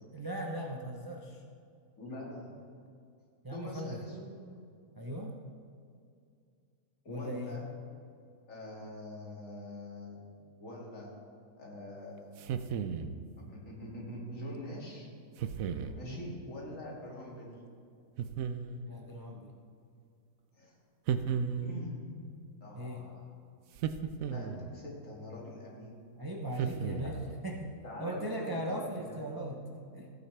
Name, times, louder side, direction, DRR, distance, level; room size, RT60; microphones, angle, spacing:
voice 1, 0.1-1.4 3.4-4.0 4.9-5.3 7.1-7.6 15.8-16.3 18.9-19.5 22.7-23.1 26.2-27.7 28.0-30.1, equal, 25° right, 1 dB, 0.4 m, -38 dB
voice 2, 2.0-2.5 3.5-4.4 7.0-7.6 8.5-10.2 10.6-11.1 11.6-12.7 13.5-15.1 16.0-17.6 20.6-20.7 21.6-22.0 22.6-23.3 24.2-26.0 27.8-28.6 29.1-29.2, left 1 dB, 55° left, -4 dB, 2.6 m, -44 dB
sound 1, 12.4-13.2 15.4-16.0 18.2-19.0 21.1-21.9 23.7-24.7 26.6-27.3, right 7 dB, 70° right, 0.9 m, -35 dB
15.0 x 9.3 x 3.3 m, 2.4 s
omnidirectional pair, 1.6 m